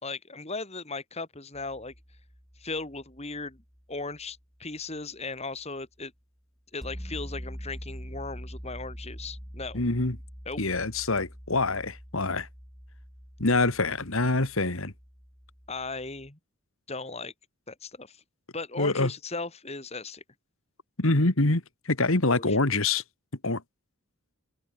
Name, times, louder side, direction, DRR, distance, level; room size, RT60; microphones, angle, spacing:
voice 1, 0.0-1.9 2.6-3.6 3.9-6.1 6.7-9.8 10.5-10.6 15.7-16.4 16.9-17.3 17.7-18.2 18.5-20.2 22.3-22.6, left 3 dB, 30° left, 2.6 m, -37 dB
sound 1, 1.5-4.8 6.8-16.3, equal, ahead, 6.1 m, -44 dB
voice 2, 9.7-10.2 10.6-12.5 13.4-14.9 18.8-19.1 21.0-23.0 23.4-23.6, left 2 dB, 65° left, 2.2 m, -25 dB
head